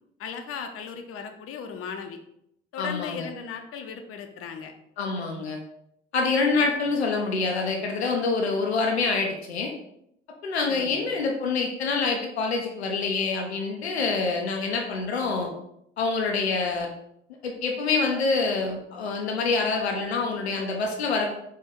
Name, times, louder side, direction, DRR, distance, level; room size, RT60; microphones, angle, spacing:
voice 1, 0.2-2.2 2.7-4.7 6.6-6.7 10.7-11.2, left 6 dB, 45° left, 6 dB, 0.6 m, -37 dB
voice 2, 2.8-3.3 5.0-5.6 6.1-9.7 10.4-15.5 16.0-16.9 17.4-21.3, left 4 dB, 85° left, 2 dB, 0.5 m, -26 dB
4.2 x 2.6 x 3.6 m, 0.76 s
figure-of-eight pair, 45°, 31 cm